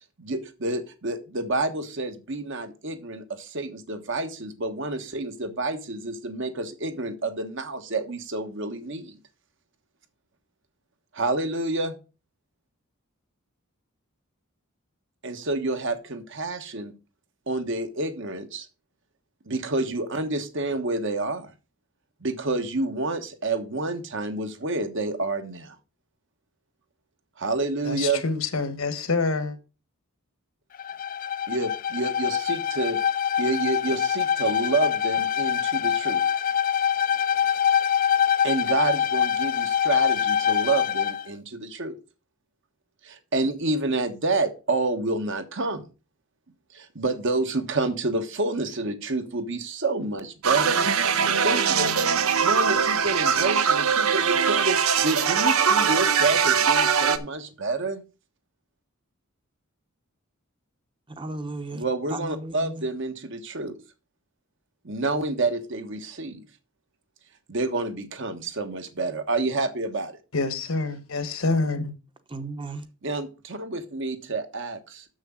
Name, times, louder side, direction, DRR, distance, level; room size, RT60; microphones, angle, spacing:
voice 1, 0.2-9.2 11.1-11.9 15.2-16.9 17.5-18.7 19.5-21.5 22.2-25.8 27.4-28.2 31.5-33.0 33.4-36.2 38.4-41.9 43.0-45.8 46.7-50.9 51.4-58.0 61.7-63.8 64.8-66.4 67.5-70.1 73.0-75.0, right 2 dB, 60° right, 1.3 m, -28 dB
voice 2, 27.8-29.6 70.3-71.9, left 3 dB, 75° left, 1.4 m, -26 dB
Bowed string instrument, 30.7-41.2, left 9 dB, 40° left, 0.4 m, -24 dB
sound 1, 50.4-57.2, right 6 dB, 85° right, 0.9 m, -22 dB
voice 3, 61.1-62.9 72.3-72.9, right 2 dB, 25° right, 0.9 m, -35 dB
7.0 x 6.4 x 6.3 m
head